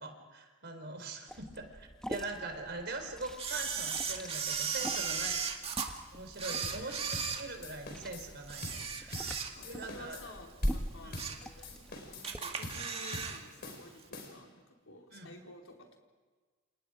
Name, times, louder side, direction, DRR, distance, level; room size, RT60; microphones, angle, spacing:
voice 1, 0.0-5.4 5.7-5.8 6.1-10.2 11.0-11.2 15.1-15.3, right 3 dB, 55° right, 5 dB, 4.4 m, -43 dB
Liquid, 1.3-12.4, equal, 5° left, 1.3 m, -43 dB
Camera, 3.4-5.9 6.3-8.0 8.4-9.8 10.2-10.4 10.9-11.5 11.8-11.9 12.2-13.4 13.7-13.8, right 6 dB, 30° right, 2.1 m, -36 dB
voice 2, 4.8-5.4 6.5-7.2 9.2-16.0, left 1 dB, 75° left, 1 dB, 4.4 m, -52 dB
sound 1, 6.6-6.8 7.1-7.3 7.6-8.3 8.6-8.8 9.1-9.3 9.6-10.3 10.6-10.8 11.1-11.3 11.6-12.3 12.6-12.8 13.1-13.3 13.6-14.5, left 1 dB, 50° left, 5.0 m, -44 dB
29.0 x 28.5 x 5.1 m, 1.4 s
head